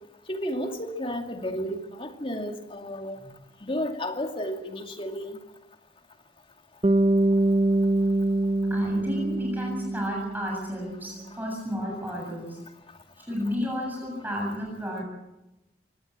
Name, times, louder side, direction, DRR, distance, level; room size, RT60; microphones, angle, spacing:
voice 1, 0.3-3.2 3.6-5.4, equal, 30° left, 4 dB, 2.4 m, -32 dB
Bass guitar, 6.8-11.1, right 2 dB, 30° right, 0.8 m, -24 dB
voice 2, 8.7-12.6 13.2-15.0, equal, 10° right, -1 dB, 7.5 m, -32 dB
25.0 x 19.0 x 8.8 m, 0.97 s
head